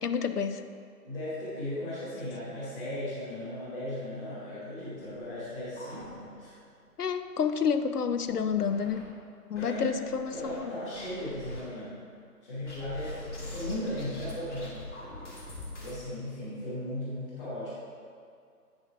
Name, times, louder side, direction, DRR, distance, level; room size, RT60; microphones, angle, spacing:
voice 1, 0.0-0.6 7.0-9.0 9.5-10.7, left 6 dB, 70° left, 9 dB, 0.6 m, -29 dB
voice 2, 1.0-6.5 9.6-10.0 10.3-12.0 12.4-14.8 15.8-17.7, left 1 dB, 20° left, -16 dB, 1.8 m, -37 dB
sound 1, 5.1-6.6 7.0-7.1 7.4-7.5 8.1-9.0 9.5-10.6 10.9-11.6 12.7-16.0, left 2 dB, 50° left, 2.0 m, -43 dB
9.0 x 6.2 x 3.6 m, 2.3 s
figure-of-eight pair, 160°, 47 cm